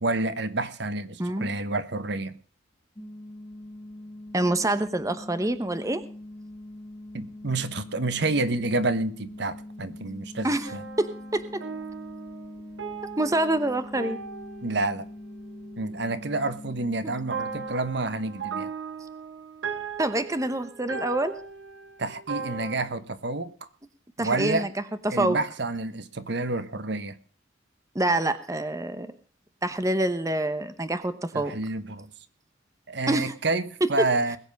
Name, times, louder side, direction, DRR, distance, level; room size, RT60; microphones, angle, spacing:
voice 1, 0.0-2.3 7.1-10.8 14.6-15.0 15.8-18.7 22.0-23.5 24.2-24.7 25.1-27.2 31.3-32.1 32.9-34.4, right 2 dB, 60° right, 13 dB, 1.2 m, -29 dB
voice 2, 1.2-1.5 4.3-6.0 10.4-10.7 11.0-11.6 13.2-14.2 20.0-21.3 24.2-24.7 25.0-25.4 27.9-29.1 29.6-31.5 33.1-33.3, right 1 dB, 15° right, 11 dB, 0.9 m, -26 dB
sound 1, 3.0-17.7, left 1 dB, 20° left, 2.3 m, -43 dB
sound 2, 10.6-16.0 17.3-22.8, right 5 dB, 80° right, 1.6 m, -38 dB
21.0 x 8.0 x 5.3 m, 0.41 s
head